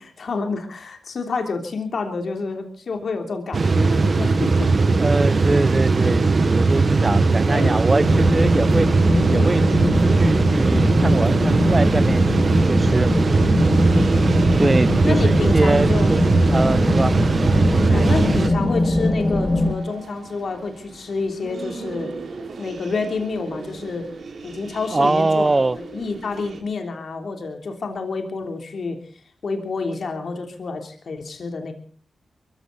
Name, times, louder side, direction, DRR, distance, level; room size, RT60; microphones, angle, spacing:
voice 1, 0.0-4.7 5.3-5.5 7.5-7.7 9.3-9.8 13.7-14.1 15.0-16.1 16.6-17.0 17.9-22.1 22.6-24.1 24.4-29.0 29.4-31.7, left 4 dB, 65° left, 3.2 m, -29 dB
sound 1, 3.5-18.5, right 3 dB, 55° right, 1.7 m, -19 dB
voice 2, 5.0-8.9 9.3-12.3 12.7-13.1 14.6-17.1 17.7-18.0 24.9-25.8, right 2 dB, 35° right, 0.8 m, -23 dB
sound 2, 8.0-19.7, left 2 dB, 35° left, 2.5 m, -22 dB
sound 3, 8.0-26.6, right 4 dB, 70° right, 3.4 m, -38 dB
22.5 x 15.0 x 4.1 m
cardioid pair, 50°, 0 cm